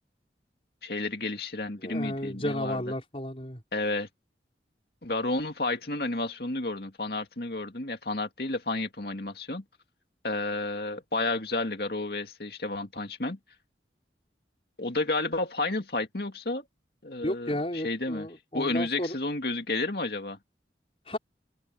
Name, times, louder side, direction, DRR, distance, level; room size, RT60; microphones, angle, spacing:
voice 1, 0.8-2.8 3.7-4.1 5.0-9.6 10.2-13.4 14.8-16.6 17.0-18.3 18.5-20.4, left 2 dB, 60° left, 2.5 m, -31 dB
voice 2, 1.8-3.6 17.2-19.1 21.1-21.2, left 1 dB, 35° left, 5.2 m, -33 dB
open air
head